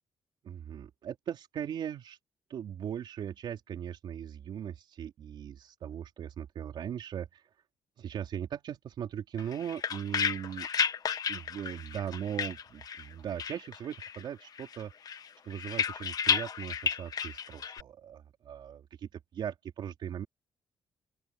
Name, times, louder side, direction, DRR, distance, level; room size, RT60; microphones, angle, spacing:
voice 1, 0.4-2.2 2.5-7.4 8.0-10.7 11.3-14.9 15.4-20.3, right 9 dB, 65° right, 3.7 m, -39 dB
sound 1, 9.4-13.1 13.4-14.3 14.6-17.8, left 7 dB, 50° left, 1.4 m, -33 dB
open air
cardioid pair, 125°, 8 cm